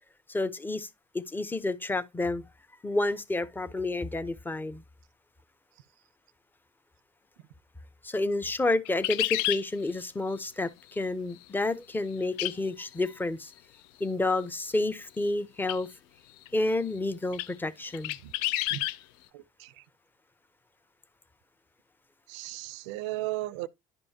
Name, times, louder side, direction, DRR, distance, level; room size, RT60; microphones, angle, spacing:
voice 1, 0.3-0.9 1.1-2.4 2.8-4.8 8.0-13.5 14.0-15.9 16.5-18.2, left 2 dB, 15° left, 0.7 m, -30 dB
sound 1, 8.9-9.6 12.4-12.5 12.9-13.0 15.6-15.8 16.5-16.6 17.3-17.5 17.9-19.0, left 16 dB, 80° left, 0.4 m, -29 dB
voice 2, 19.3-19.8 22.3-23.7, right 18 dB, 90° right, 0.4 m, -36 dB
10.5 x 5.3 x 2.8 m
supercardioid pair, 85°, 15 cm